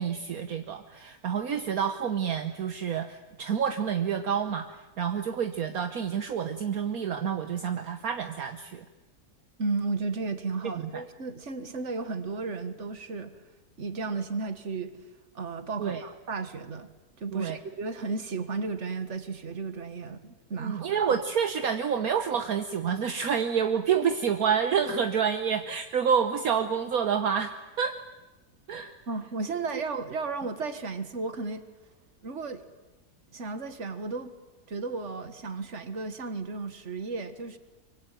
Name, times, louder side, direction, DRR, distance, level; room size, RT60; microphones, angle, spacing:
voice 1, 0.0-8.8 10.6-11.0 15.8-16.0 17.3-17.6 20.6-27.9 28.7-28.9, right 7 dB, 65° right, 7 dB, 1.5 m, -28 dB
voice 2, 9.6-13.3 13.8-14.9 15.4-16.9 17.2-20.9 29.1-31.6 32.2-32.6 33.3-34.3 34.7-37.6, right 4 dB, 50° right, 10 dB, 1.9 m, -34 dB
24.5 x 24.0 x 9.1 m, 1.1 s
omnidirectional pair, 1.7 m